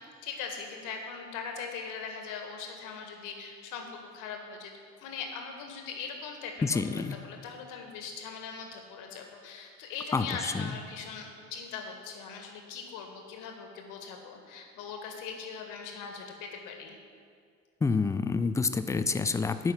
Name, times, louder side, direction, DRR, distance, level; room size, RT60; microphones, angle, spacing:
voice 1, 0.2-4.7 5.0-6.5 6.9-17.0, left 5 dB, 55° left, 3 dB, 1.7 m, -41 dB
voice 2, 6.6-7.2 10.1-10.7 17.8-19.7, left 4 dB, 10° left, 11 dB, 0.4 m, -28 dB
9.4 x 5.8 x 7.9 m, 2.2 s
figure-of-eight pair, 60°, 37 cm